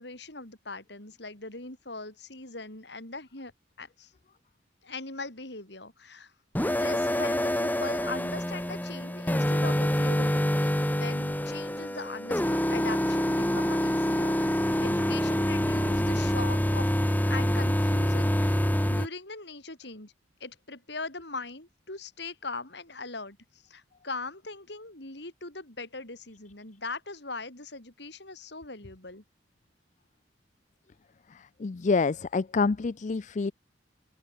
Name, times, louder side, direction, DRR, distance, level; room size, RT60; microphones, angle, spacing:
voice 1, 0.0-3.5 3.8-4.1 4.8-6.3 6.6-16.9 17.2-18.6 18.9-20.1 20.4-29.2, left 3 dB, 65° left, 5.3 m, -40 dB
sound 1, 6.5-19.1, equal, 10° left, 2.0 m, -26 dB
voice 2, 31.3-33.5, left 4 dB, 40° left, 0.4 m, -27 dB
open air
head